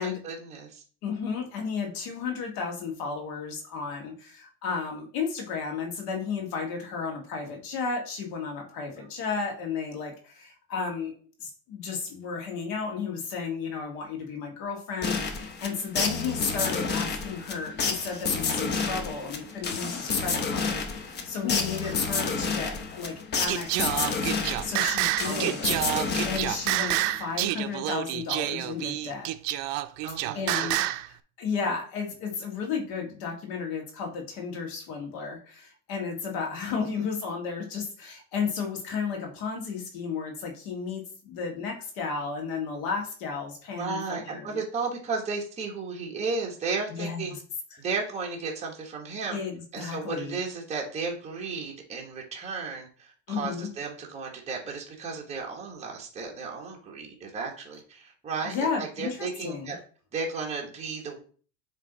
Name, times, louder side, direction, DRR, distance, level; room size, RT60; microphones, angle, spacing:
voice 1, 0.0-0.8 9.0-9.1 21.8-22.0 25.2-26.3 30.0-30.9 36.7-36.9 43.8-47.4 47.8-49.4 49.7-59.8 60.1-61.2, right 4 dB, 20° right, -1 dB, 1.4 m, -34 dB
voice 2, 1.0-11.1 11.4-25.6 26.2-29.3 30.3-31.0 31.4-44.6 46.9-47.3 47.7-47.8 49.3-50.4 53.3-53.7 58.4-59.7, left 5 dB, 70° left, 1 dB, 1.7 m, -33 dB
sound 1, 15.0-27.1, left 5 dB, 30° left, 0.9 m, -30 dB
Singing, 23.5-31.1, right 15 dB, 65° right, 0.5 m, -28 dB
7.7 x 3.2 x 4.0 m, 0.42 s
supercardioid pair, 135°, 36 cm